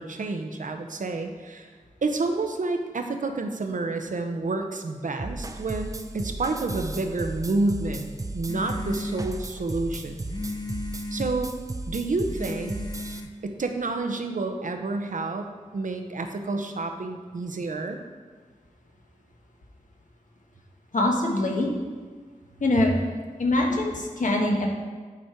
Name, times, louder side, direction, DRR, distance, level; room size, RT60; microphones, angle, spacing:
voice 1, 0.0-1.7 2.0-10.2 11.1-11.5 11.9-12.9 13.4-18.0, right 3 dB, 75° right, 5 dB, 0.7 m, -29 dB
sound 1, 5.2-13.2, right 2 dB, 25° right, 0.5 m, -35 dB
sound 2, 8.5-13.9, left 2 dB, 30° left, 0.5 m, -37 dB
voice 2, 20.9-21.7 22.6-23.0 23.4-24.7, left 1 dB, 75° left, 0 dB, 1.2 m, -23 dB
8.4 x 5.0 x 4.5 m, 1.5 s
wide cardioid pair, 80°, 14 cm